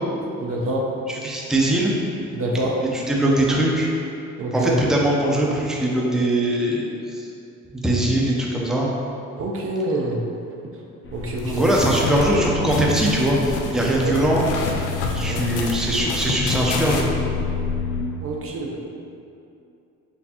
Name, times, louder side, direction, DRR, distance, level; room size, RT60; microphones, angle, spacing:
voice 1, 0.4-0.9 2.3-2.8 4.4-4.8 9.4-10.2 11.1-11.7 13.8-14.1 15.3-15.5 18.2-18.8, right 2 dB, 50° right, -1 dB, 0.5 m, -26 dB
voice 2, 1.1-1.9 2.8-3.9 4.5-6.8 7.1-7.3 7.7-8.9 11.4-14.5 15.1-17.1, right 1 dB, ahead, -3 dB, 0.5 m, -21 dB
sound 1, 11.0-18.0, left 5 dB, 40° left, 0.7 m, -30 dB
sound 2, 11.4-17.0, left 3 dB, 85° left, 0.5 m, -30 dB
4.4 x 3.2 x 2.8 m, 2.6 s
cardioid pair, 90°, 30 cm